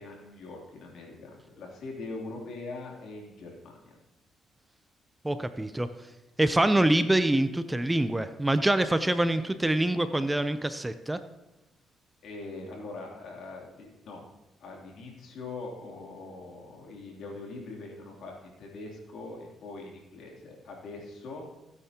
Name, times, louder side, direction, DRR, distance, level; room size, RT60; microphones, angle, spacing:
voice 1, 0.0-4.0 9.3-9.8 12.2-14.2 14.6-21.5, left 3 dB, 75° left, -1 dB, 3.0 m, -42 dB
voice 2, 5.2-5.9 6.4-11.2, right 1 dB, 10° right, 11 dB, 0.6 m, -25 dB
17.0 x 9.5 x 2.9 m, 0.97 s
cardioid pair, 90°, 0 cm